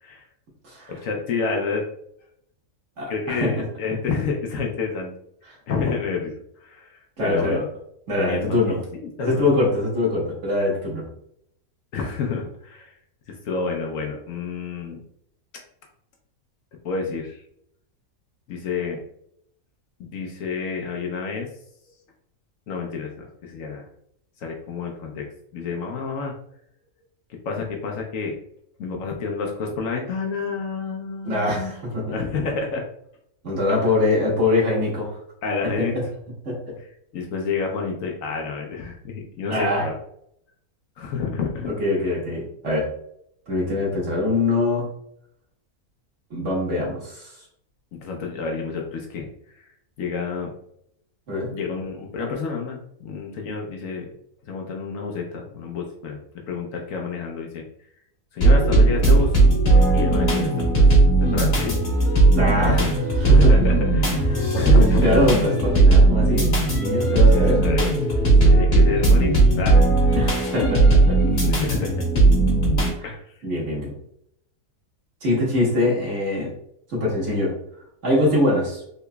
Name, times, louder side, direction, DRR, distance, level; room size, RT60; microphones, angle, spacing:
voice 1, 0.9-1.8 3.1-5.1 5.7-6.3 6.6-7.7 8.2-9.8 11.9-13.0 13.3-15.0 16.8-17.4 18.5-19.0 20.0-21.5 22.7-23.9 24.4-25.3 25.5-26.3 27.4-28.4 28.8-31.7 32.1-32.8 33.8-33.9 35.4-35.9 36.8-36.9 37.1-39.9 41.0-41.7 47.9-49.3 49.6-49.7 50.0-50.5 51.5-54.1 54.4-57.6 58.3-59.4 59.9-60.9 61.2-61.8 62.7-62.9 63.2-64.2 64.5-65.1 67.1-68.0 68.4-69.3 69.6-70.2 71.2-72.0 73.0-73.3, left 5 dB, 70° left, 1 dB, 0.9 m, -29 dB
voice 2, 3.0-3.6 7.2-7.6 8.1-8.8 9.2-11.0 31.2-32.0 33.4-35.1 35.8-35.9 36.4-36.6 39.5-39.9 41.8-42.9 43.5-44.9 46.3-47.3 51.3-51.5 62.3-62.9 63.3-63.7 64.2-66.5 66.8-67.6 70.1-71.2 73.0-73.1 73.4-73.9 75.2-76.5 76.9-77.5 78.0-78.8, left 2 dB, 55° right, -4 dB, 1.5 m, -23 dB
sound 1, 58.4-72.9, right 2 dB, 45° left, 1.2 m, -17 dB
3.8 x 2.9 x 2.2 m, 0.72 s
omnidirectional pair, 1.6 m